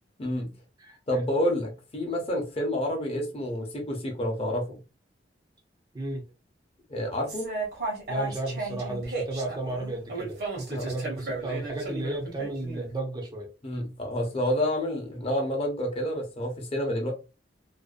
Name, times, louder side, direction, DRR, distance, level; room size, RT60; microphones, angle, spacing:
voice 1, 1.1-4.8 6.9-7.5 10.7-10.9 13.6-17.1, left 1 dB, 35° left, 0.7 m, -29 dB
sound 1, 7.3-12.8, right 2 dB, 60° right, 0.9 m, -34 dB
voice 2, 8.1-13.5, right 2 dB, 25° right, 0.5 m, -33 dB
2.5 x 2.1 x 2.3 m
head